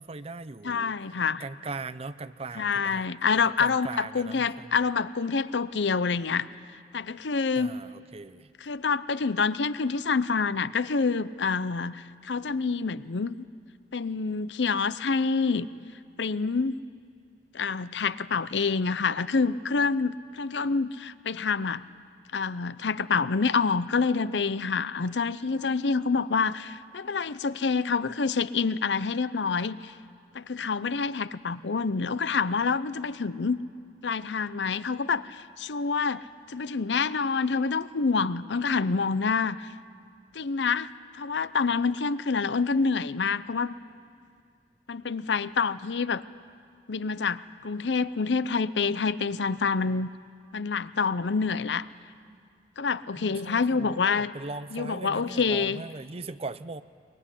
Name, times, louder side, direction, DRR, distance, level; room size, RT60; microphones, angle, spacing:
voice 1, 0.0-0.9 1.4-3.1 3.6-4.8 7.6-8.5 53.1-56.8, right 3 dB, 35° right, 14 dB, 0.6 m, -39 dB
voice 2, 0.6-1.4 2.6-6.5 6.9-7.7 8.6-13.3 13.9-15.7 16.2-16.8 17.5-21.8 22.3-29.9 30.3-33.6 34.0-39.7 40.3-43.8 44.9-46.2 46.9-50.1 50.5-51.9 52.8-54.3 54.7-55.8, left 5 dB, 90° left, 15 dB, 0.7 m, -27 dB
23.0 x 22.0 x 9.9 m, 2.3 s
head